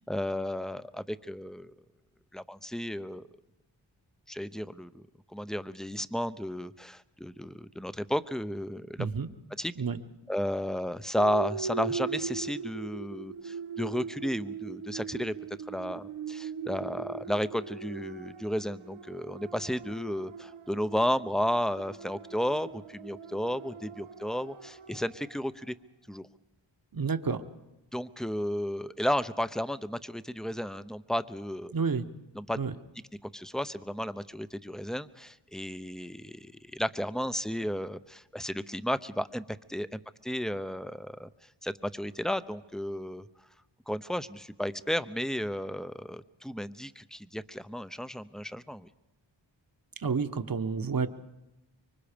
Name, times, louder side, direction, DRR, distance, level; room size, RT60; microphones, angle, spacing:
voice 1, 0.1-1.7 2.3-3.3 4.3-5.0 5.3-9.1 9.6-9.7 10.3-15.3 15.7-25.8 26.1-26.3 27.9-31.7 32.3-32.6 33.3-41.3 41.6-43.3 43.9-48.9, equal, ahead, 13 dB, 0.8 m, -33 dB
voice 2, 9.0-9.3 9.8-10.0 26.9-27.4 31.7-32.0 32.6-32.7 50.0-51.1, right 5 dB, 45° right, 9 dB, 1.4 m, -29 dB
sound 1, 11.2-25.4, right 5 dB, 80° right, 1.2 m, -40 dB
25.5 x 24.0 x 5.2 m, 0.97 s
cardioid pair, 45°, 49 cm